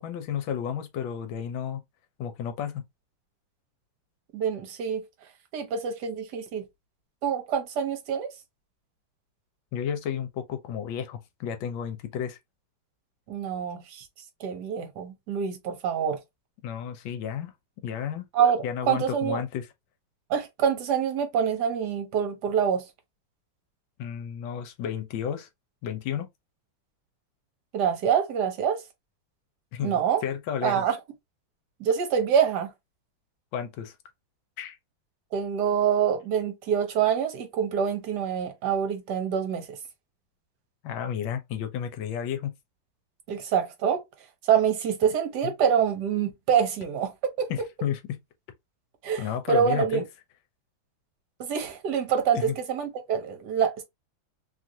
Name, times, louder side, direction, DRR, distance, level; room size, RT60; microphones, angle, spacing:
voice 1, 0.0-1.8 2.2-2.9 9.7-12.4 16.6-17.5 17.8-18.3 18.6-19.7 24.0-25.5 25.8-26.3 29.7-30.8 33.5-34.0 34.6-34.8 40.8-42.5 45.4-45.5 47.5-48.2 49.2-50.0 52.3-52.5, left 8 dB, 80° left, 1.4 m, -32 dB
voice 2, 4.3-5.0 5.5-6.6 7.2-8.3 13.3-14.0 14.4-16.2 18.3-19.4 20.3-22.8 27.7-28.8 29.8-30.2 30.6-31.0 31.8-32.7 35.3-39.7 43.3-44.0 44.5-47.1 47.4-47.5 49.0-50.0 51.4-53.8, right 8 dB, 65° right, 1.2 m, -26 dB
3.2 x 2.4 x 2.6 m
omnidirectional pair, 2.1 m